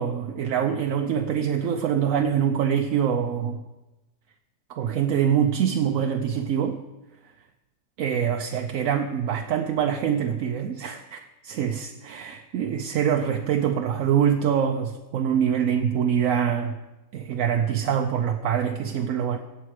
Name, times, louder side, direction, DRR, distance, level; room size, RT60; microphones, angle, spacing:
voice 1, 0.0-3.6 4.7-6.8 8.0-16.8 17.1-19.4, right 8 dB, 75° right, 5 dB, 1.0 m, -24 dB
16.5 x 7.3 x 4.9 m, 1.1 s
omnidirectional pair, 1.5 m